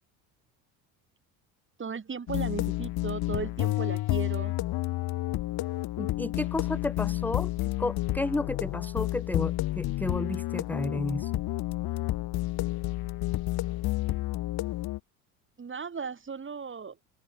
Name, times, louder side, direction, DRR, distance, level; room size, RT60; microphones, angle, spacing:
voice 1, 1.8-4.5 15.6-17.0, right 5 dB, 30° right, 7.1 m, -36 dB
sound 1, 2.3-15.0, left 16 dB, 60° left, 2.6 m, -30 dB
voice 2, 6.0-7.5 7.8-11.4, left 2 dB, 5° left, 0.7 m, -32 dB
supercardioid pair, 85°, 42 cm